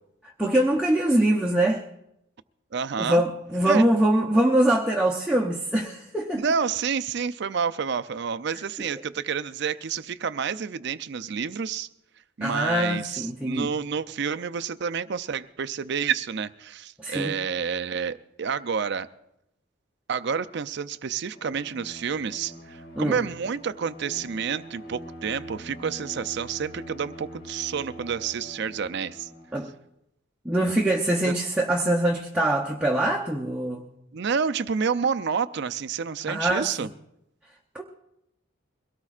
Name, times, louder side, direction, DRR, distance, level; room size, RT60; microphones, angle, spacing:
voice 1, 0.4-1.8 3.0-6.4 12.4-13.7 17.0-17.3 23.0-23.2 29.5-29.7 30.4-33.8 36.3-36.9 37.7-37.8, right 1 dB, 5° right, -2 dB, 0.7 m, -23 dB
voice 2, 2.7-3.2 3.6-3.9 6.3-11.9 12.4-19.1 20.1-29.3 31.2-31.3 34.1-36.9, right 6 dB, 55° right, 12 dB, 0.5 m, -29 dB
Bowed string instrument, 21.3-29.8, right 1 dB, 70° left, 2.1 m, -43 dB
23.0 x 17.5 x 2.4 m, 0.83 s
head